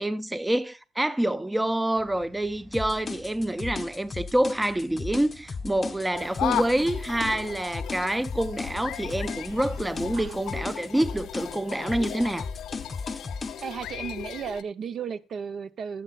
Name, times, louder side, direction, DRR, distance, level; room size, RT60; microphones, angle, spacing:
voice 1, 0.0-12.5, right 1 dB, 10° right, 0.6 m, -27 dB
sound 1, 1.9-12.2, right 2 dB, 40° right, 6.2 m, -52 dB
sound 2, 2.7-13.6, left 4 dB, 35° left, 0.6 m, -36 dB
sound 3, 6.1-14.6, left 10 dB, 80° left, 0.7 m, -36 dB
voice 2, 13.6-16.0, right 6 dB, 60° right, 0.7 m, -35 dB
17.5 x 7.1 x 2.4 m
cardioid pair, 90°, 0 cm